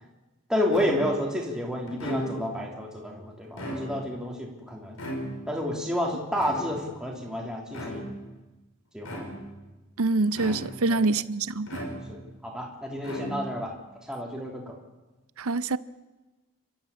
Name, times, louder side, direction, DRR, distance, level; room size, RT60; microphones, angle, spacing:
voice 1, 0.5-5.0 5.5-8.1 8.9-9.2 10.9-11.0 12.1-13.7 14.1-14.7, left 1 dB, 5° right, 3.0 m, -30 dB
sound 1, 0.7-1.3 1.9-2.6 3.4-4.2 5.0-5.7 6.4-7.0 7.7-8.3 9.0-9.6 10.3-10.9 11.7-12.4 13.0-13.7, equal, 70° left, 5.4 m, -36 dB
voice 2, 10.0-11.8 15.4-15.8, right 3 dB, 75° right, 0.7 m, -25 dB
30.0 x 13.0 x 8.4 m
head